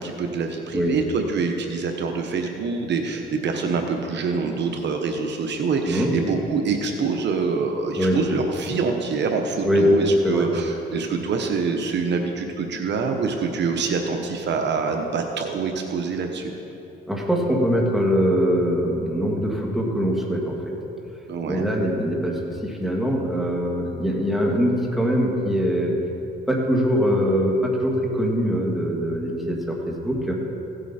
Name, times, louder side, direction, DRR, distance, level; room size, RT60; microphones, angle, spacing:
voice 1, 0.0-16.5 21.3-21.7, right 4 dB, 65° right, 4 dB, 1.0 m, -25 dB
voice 2, 17.1-20.6 21.5-25.9 26.5-30.4, equal, ahead, -2 dB, 2.2 m, -22 dB
16.5 x 8.1 x 4.3 m, 3.0 s
cardioid pair, 90°, 20 cm